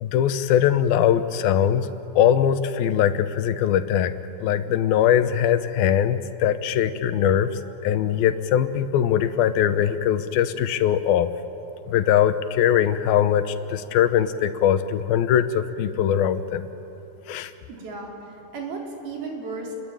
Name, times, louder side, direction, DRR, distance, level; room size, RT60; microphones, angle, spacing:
voice 1, 0.0-1.9 2.2-4.1 4.4-11.3 11.9-16.7 17.3-17.5, left 9 dB, 85° left, 11 dB, 2.8 m, -21 dB
voice 2, 17.7-19.8, right 3 dB, 90° right, 0 dB, 5.7 m, -34 dB
30.0 x 22.0 x 8.8 m, 3.0 s
omnidirectional pair, 4.2 m